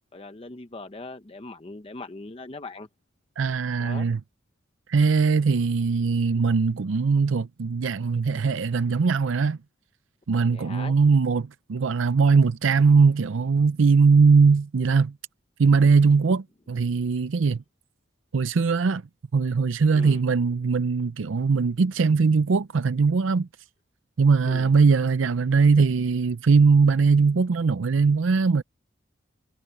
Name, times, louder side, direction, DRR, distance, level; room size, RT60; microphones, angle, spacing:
voice 1, 0.1-2.9 3.8-4.1 5.5-5.6 10.4-10.9 19.9-20.2 24.4-24.7, left 2 dB, 30° left, 0.8 m, -40 dB
voice 2, 3.4-4.2 4.9-9.6 10.3-15.1 15.6-17.6 18.3-19.0 19.3-23.5 24.2-28.6, right 4 dB, 80° right, 0.5 m, -20 dB
head